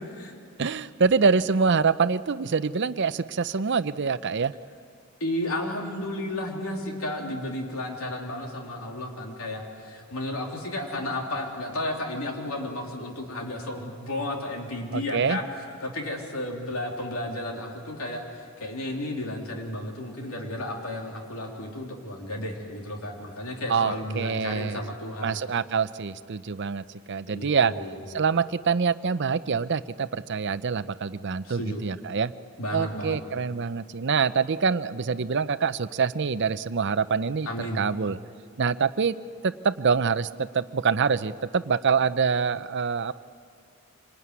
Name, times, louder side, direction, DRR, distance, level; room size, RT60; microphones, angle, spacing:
voice 1, 0.6-4.5 14.9-15.4 23.7-24.8 25.2-27.7 28.1-32.3 32.7-38.2 38.6-39.1 39.4-43.1, right 5 dB, 55° right, 14 dB, 0.6 m, -25 dB
voice 2, 5.2-15.4 15.8-25.4 27.3-28.0 31.4-31.8 32.6-33.2 37.4-37.8, left 1 dB, 70° left, 1 dB, 3.4 m, -33 dB
25.5 x 19.5 x 9.6 m, 2.3 s
head